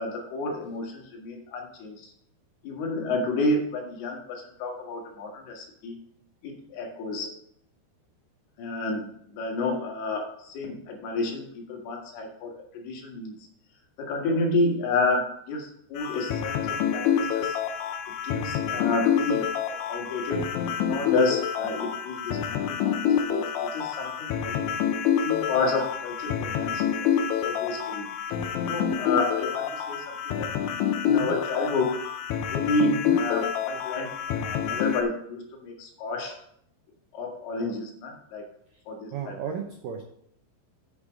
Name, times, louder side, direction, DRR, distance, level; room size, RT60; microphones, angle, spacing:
voice 1, 0.0-2.1 2.6-6.0 6.4-7.3 8.6-13.4 14.0-17.6 18.2-20.5 20.9-22.6 22.8-23.4 23.7-24.6 25.2-28.1 28.6-30.5 31.0-32.0 32.5-36.4 37.1-38.5 38.9-39.3, left 2 dB, 65° left, 0 dB, 3.4 m, -30 dB
sound 1, 16.0-35.0, left 8 dB, 80° left, 3.2 m, -27 dB
voice 2, 31.1-31.4 32.9-33.2 38.7-38.8 39.1-40.0, right 8 dB, 85° right, 3 dB, 1.9 m, -35 dB
8.7 x 6.8 x 5.1 m, 0.68 s
omnidirectional pair, 5.3 m